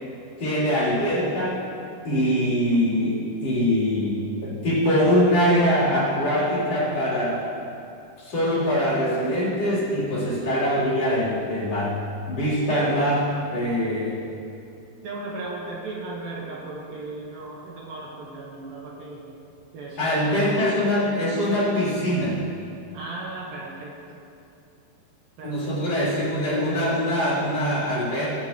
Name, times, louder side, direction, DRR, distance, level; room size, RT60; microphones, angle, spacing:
voice 1, 0.4-1.6 2.0-7.5 8.2-12.0 12.3-14.2 20.0-22.4 25.4-28.3, equal, 40° left, -8 dB, 4.5 m, -23 dB
voice 2, 15.0-19.3 19.7-20.8 22.9-24.0 25.4-25.8, right 2 dB, 70° right, -3 dB, 2.9 m, -36 dB
21.0 x 9.4 x 3.1 m, 2.6 s
omnidirectional pair, 4.6 m